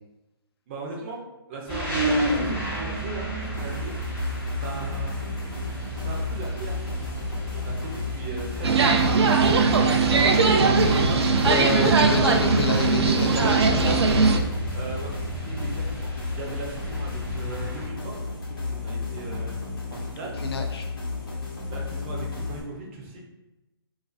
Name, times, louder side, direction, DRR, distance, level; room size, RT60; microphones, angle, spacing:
voice 1, 0.7-1.2 1.5-3.9 4.5-5.1 5.9-7.1 7.5-8.9 9.8-10.7 11.5-11.7 14.7-15.1 15.4-18.2 18.5-19.6 19.9-20.4 21.7-23.2, right 3 dB, 30° right, -2 dB, 0.5 m, -38 dB
sound 1, 1.7-17.9, right 1 dB, 10° left, 0.9 m, -33 dB
sound 2, 3.4-22.6, left 4 dB, 55° left, 0.8 m, -33 dB
sound 3, 8.6-14.4, right 4 dB, 90° right, 0.4 m, -20 dB
voice 2, 11.4-14.0 20.4-20.9, left 3 dB, 70° left, 4 dB, 0.5 m, -28 dB
2.4 x 2.4 x 2.3 m, 0.98 s
hypercardioid pair, 155°, 13 cm